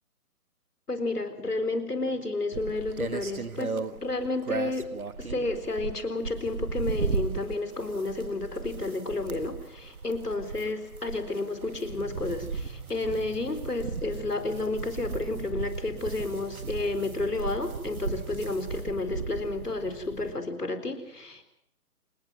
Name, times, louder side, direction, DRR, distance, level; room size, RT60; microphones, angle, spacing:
voice 1, 0.9-4.9 5.2-21.4, left 2 dB, 80° left, 9 dB, 4.3 m, -31 dB
sound 1, 2.5-19.8, right 4 dB, 65° right, 1.8 m, -36 dB
sound 2, 11.8-20.3, right 7 dB, 30° right, 5.2 m, -45 dB
28.5 x 20.0 x 6.0 m, 0.72 s
figure-of-eight pair, 145°, 46 cm